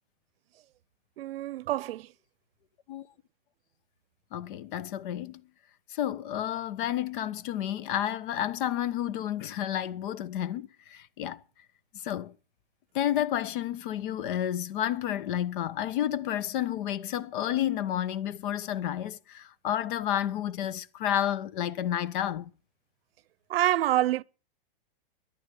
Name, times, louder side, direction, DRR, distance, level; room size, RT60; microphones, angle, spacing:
voice 1, 1.2-2.1 23.5-24.2, right 14 dB, 80° right, 0.7 m, -26 dB
voice 2, 4.3-5.4 5.9-11.4 12.0-12.3 12.9-22.5, left 11 dB, 60° left, 1.1 m, -31 dB
13.5 x 11.0 x 8.4 m
hypercardioid pair, 135°, 29 cm